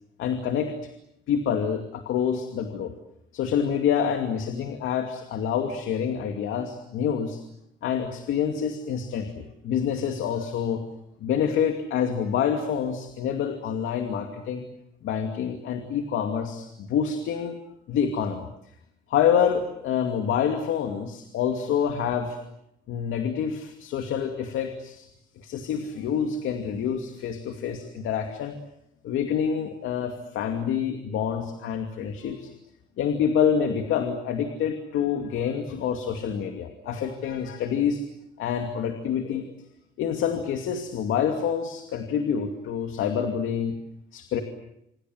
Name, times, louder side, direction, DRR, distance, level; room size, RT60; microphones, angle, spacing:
voice 1, 0.2-0.7 1.3-2.9 3.3-7.4 7.8-10.8 11.2-14.7 15.0-17.6 17.9-18.4 19.1-22.4 22.9-25.1 25.4-28.6 29.0-32.5 33.0-38.0 38.4-39.5 40.0-43.8 44.1-44.4, left 8 dB, 85° left, 5 dB, 2.5 m, -27 dB
27.0 x 26.0 x 7.9 m, 0.81 s
cardioid pair, 90°, 20 cm